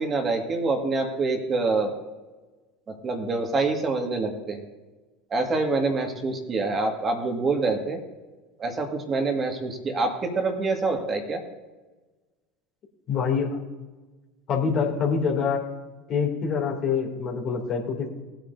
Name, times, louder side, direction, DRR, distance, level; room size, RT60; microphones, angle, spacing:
voice 1, 0.0-1.9 2.9-4.6 5.3-8.0 8.6-11.4, right 3 dB, 30° right, 3 dB, 1.9 m, -26 dB
voice 2, 13.1-13.5 14.5-15.6 16.1-18.1, left 6 dB, 45° left, 0 dB, 2.8 m, -25 dB
19.0 x 9.2 x 2.7 m, 1.2 s
hypercardioid pair, 75°, 0 cm